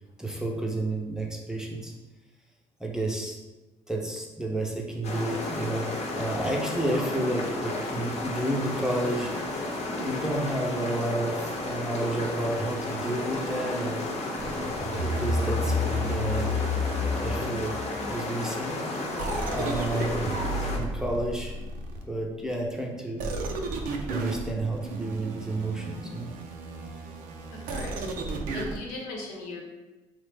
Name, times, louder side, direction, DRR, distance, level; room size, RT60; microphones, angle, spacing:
voice 1, 0.2-1.9 2.8-3.4 3.9-9.3 10.0-14.1 15.0-16.5 17.2-17.8 18.1-18.8 19.5-20.3 20.7-21.5 22.1-23.2 24.1-26.4, right 1 dB, 5° right, -1 dB, 0.6 m, -31 dB
sound 1, 5.0-20.8, left 2 dB, 50° left, 0.7 m, -32 dB
sound 2, 14.4-18.1 19.2-22.3 23.2-28.8, equal, 70° right, 0.4 m, -32 dB
voice 2, 27.5-28.1 28.5-29.6, left 2 dB, 85° left, -2 dB, 0.8 m, -38 dB
3.0 x 2.0 x 3.3 m, 1.1 s
supercardioid pair, 65°, 14 cm